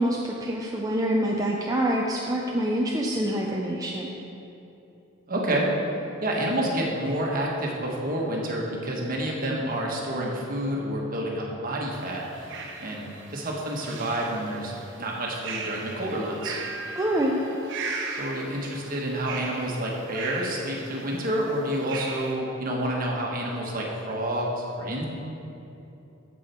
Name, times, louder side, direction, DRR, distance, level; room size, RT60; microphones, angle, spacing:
voice 1, 0.0-4.2 17.0-17.4, right 1 dB, 20° right, -2 dB, 0.5 m, -26 dB
voice 2, 5.3-5.7 6.2-12.2 12.8-14.7 15.0-16.6 18.1-25.0, right 1 dB, 45° right, -2 dB, 1.4 m, -29 dB
sound 1, 11.9-22.3, right 4 dB, 65° right, 1.0 m, -38 dB
8.7 x 7.7 x 4.4 m, 2.9 s
head